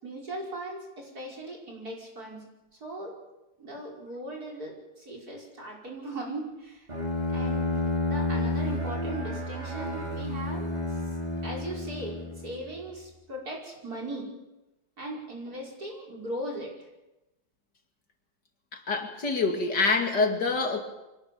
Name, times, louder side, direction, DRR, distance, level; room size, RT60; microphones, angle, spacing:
voice 1, 0.0-2.4 2.8-3.2 3.6-6.9 7.3-11.1 11.4-14.3 15.0-16.9, right 1 dB, 55° right, -1 dB, 6.0 m, -38 dB
Bowed string instrument, 6.9-12.7, left 2 dB, 25° right, 2.8 m, -30 dB
voice 2, 18.9-20.8, left 3 dB, 65° left, 4 dB, 3.0 m, -26 dB
24.5 x 18.0 x 7.0 m, 0.98 s
omnidirectional pair, 1.9 m